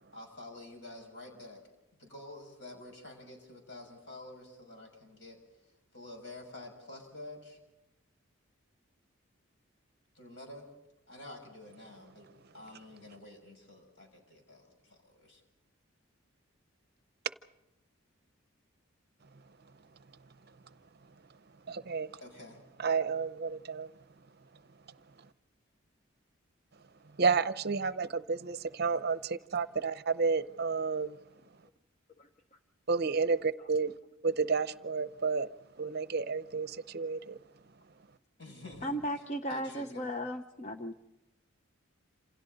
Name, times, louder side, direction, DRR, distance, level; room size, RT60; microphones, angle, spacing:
voice 1, 0.1-1.6 2.0-5.4 5.9-7.6 10.1-10.7 11.1-12.3 12.5-15.4 22.2-22.6 38.4-40.2, left 2 dB, 60° left, 6.3 m, -49 dB
voice 2, 21.7-22.1 22.8-23.9 27.2-31.2 32.9-33.9 34.2-35.5 35.8-37.4, right 5 dB, 50° right, 0.6 m, -31 dB
voice 3, 38.8-40.9, equal, 35° left, 0.8 m, -35 dB
28.0 x 27.5 x 4.0 m
head